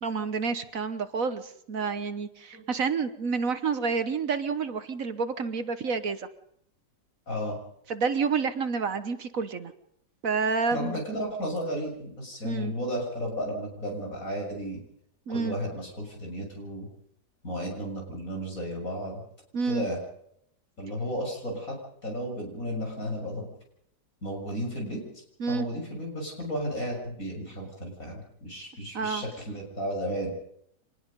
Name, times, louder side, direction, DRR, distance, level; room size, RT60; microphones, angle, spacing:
voice 1, 0.0-6.3 7.9-9.7 10.2-11.0 12.4-12.7 15.3-15.6 19.5-19.8 25.4-25.7 28.9-29.2, right 5 dB, 55° right, 11 dB, 1.4 m, -29 dB
voice 2, 7.3-7.6 10.7-14.8 15.3-16.9 17.4-19.2 19.6-20.0 20.8-21.7 22.0-23.5 24.2-30.3, equal, 50° left, 1 dB, 7.2 m, -33 dB
25.5 x 19.5 x 5.4 m, 0.73 s
omnidirectional pair, 1.9 m